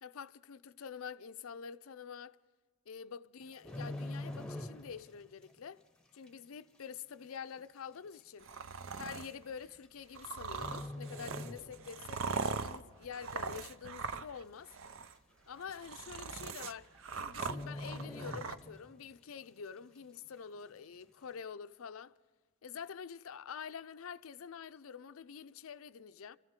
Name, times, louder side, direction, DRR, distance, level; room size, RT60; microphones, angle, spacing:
voice 1, 0.0-2.4 2.9-5.8 6.1-8.5 8.9-14.7 15.5-22.1 22.6-26.4, left 6 dB, 75° left, 0.5 m, -47 dB
sound 1, 3.4-5.2 5.4-5.7 6.3-6.4 7.3-7.4 7.6-7.7 8.5-8.7 9.8-10.2 10.5-12.1 12.4-12.6 13.1-13.7 14.0-14.1 14.3-14.4 14.8-14.9 15.9-16.0 16.3-16.6 16.8-17.0 17.4-19.0 19.4-19.5, left 1 dB, 5° left, 0.9 m, -44 dB
sound 2, 8.4-9.3 10.2-14.4 14.7-15.1 15.6-18.6, right 5 dB, 65° right, 0.6 m, -41 dB
27.5 x 14.0 x 3.7 m
head